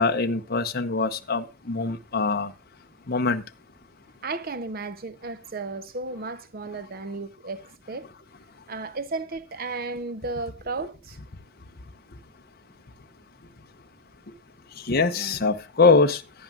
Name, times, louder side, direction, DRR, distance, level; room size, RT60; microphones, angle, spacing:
voice 1, 0.0-2.5 3.1-3.4 14.8-16.2, left 4 dB, 45° left, 0.9 m, -23 dB
voice 2, 4.2-7.6 7.9-8.1 8.7-11.2 15.1-15.4, right 3 dB, 45° right, 0.7 m, -34 dB
16.5 x 10.5 x 2.4 m
head